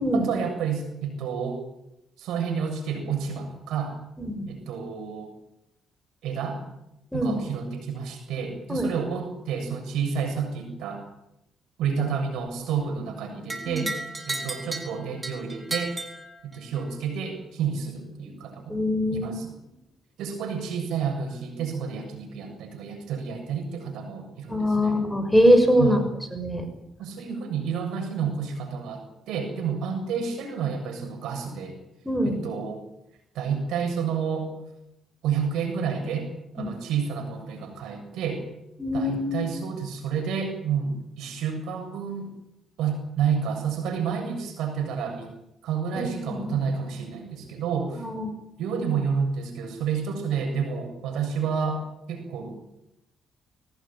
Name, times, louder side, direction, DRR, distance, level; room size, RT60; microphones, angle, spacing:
voice 1, 0.1-1.6 2.2-4.0 4.5-5.3 6.2-6.6 7.1-11.0 11.8-13.9 14.3-16.0 16.4-18.8 19.1-19.5 20.2-25.0 25.8-26.1 27.0-31.8 32.2-32.8 33.3-34.5 35.2-38.4 38.9-42.3 42.8-45.3 45.6-48.1 48.6-52.5, right 6 dB, 85° right, 5 dB, 7.2 m, -30 dB
sound 1, 13.5-16.9, right 2 dB, 20° right, 4.8 m, -34 dB
voice 2, 18.7-19.4 24.5-26.0 26.3-26.7 32.0-32.4 36.6-36.7 38.8-39.4 46.0-46.6 48.0-48.3, equal, ahead, 6 dB, 6.2 m, -23 dB
22.0 x 18.5 x 9.0 m, 0.86 s
cardioid pair, 90°, 0 cm